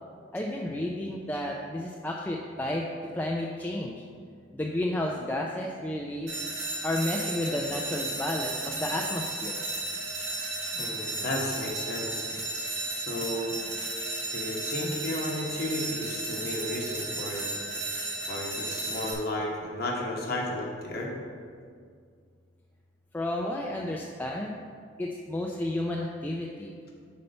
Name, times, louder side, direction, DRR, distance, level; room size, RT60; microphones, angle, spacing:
voice 1, 0.3-2.9 3.1-4.0 4.5-6.4 6.8-9.6 23.1-24.6 25.0-26.7, left 1 dB, 10° left, -1 dB, 0.3 m, -31 dB
sound 1, 6.3-19.1, right 2 dB, 75° right, 1.4 m, -34 dB
voice 2, 10.7-12.3 12.8-13.5 14.3-17.5 18.3-21.1, left 1 dB, 55° left, -2 dB, 0.9 m, -33 dB
5.4 x 4.3 x 5.3 m, 2.1 s
head